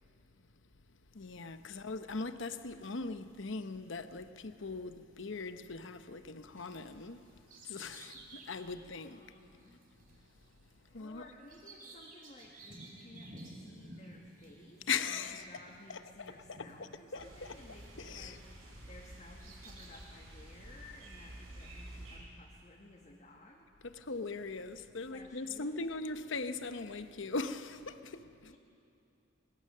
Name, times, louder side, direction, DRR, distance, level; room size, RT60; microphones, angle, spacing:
voice 1, 1.1-7.3 7.6-9.4 10.9-11.3 14.9-15.5 15.9-17.5 18.0-18.4 23.8-28.6, left 4 dB, 65° left, 0.9 m, -40 dB
Bird vocalization bird call bird song, 6.6-18.6 19.1-20.0, right 2 dB, 40° right, 3.6 m, -55 dB
voice 2, 8.2-9.8 10.8-23.7 25.1-26.1 28.4-28.6, left 1 dB, 35° left, 1.5 m, -56 dB
sound 1, 17.2-22.2, right 1 dB, 85° right, 5.7 m, -50 dB
22.5 x 20.5 x 6.7 m
head